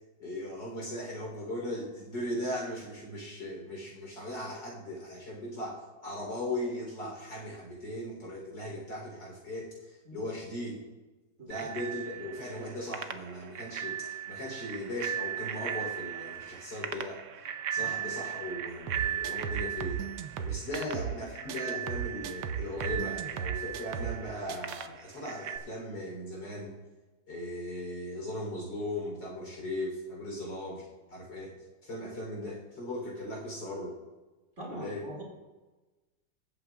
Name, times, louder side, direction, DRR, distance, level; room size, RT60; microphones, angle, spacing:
voice 1, 0.2-5.8 6.0-10.8 11.4-17.2 17.7-20.0 20.4-26.7 27.3-31.5 31.8-34.0 34.7-35.1, left 1 dB, 65° left, -2 dB, 4.3 m, -38 dB
Bicycle bell, 11.5-25.6, right 9 dB, 65° right, 0.7 m, -38 dB
voice 2, 17.8-18.1 20.5-20.9 34.6-35.2, equal, 40° right, -1 dB, 2.8 m, -45 dB
sound 1, 18.9-21.2 21.5-24.2 24.5-24.9, right 8 dB, 80° right, 1.5 m, -36 dB
22.5 x 8.6 x 2.4 m, 1.2 s
omnidirectional pair, 2.1 m